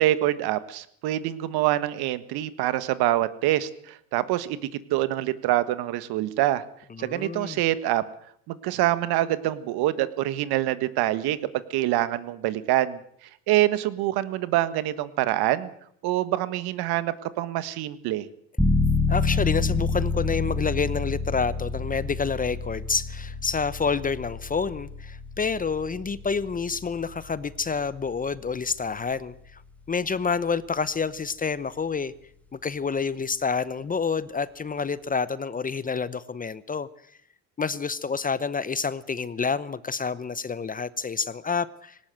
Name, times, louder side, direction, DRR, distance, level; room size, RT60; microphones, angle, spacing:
voice 1, 0.0-4.6 4.9-6.6 7.0-8.0 8.5-11.4 11.7-13.0 13.5-15.7 16.0-18.3, right 14 dB, 65° right, 14 dB, 1.6 m, -25 dB
voice 2, 7.0-7.6 19.1-29.6 29.9-32.1 32.5-36.9 37.6-42.0, left 5 dB, 20° left, 17 dB, 0.8 m, -28 dB
sound 1, 18.6-29.1, left 3 dB, 5° left, 2.0 m, -29 dB
18.5 x 18.0 x 7.8 m, 0.66 s
supercardioid pair, 100°, 41 cm